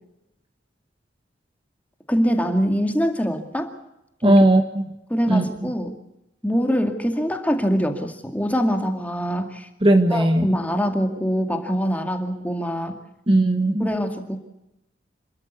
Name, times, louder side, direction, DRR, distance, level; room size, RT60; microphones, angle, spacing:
voice 1, 2.1-3.7 4.2-4.4 5.1-5.9 6.4-9.7 10.1-13.0 13.8-14.4, equal, 10° left, 5 dB, 2.2 m, -24 dB
voice 2, 4.2-4.8 5.3-5.5 9.8-10.5 13.3-13.9, right 1 dB, 30° right, 6 dB, 1.5 m, -17 dB
27.5 x 13.0 x 8.3 m, 0.91 s
head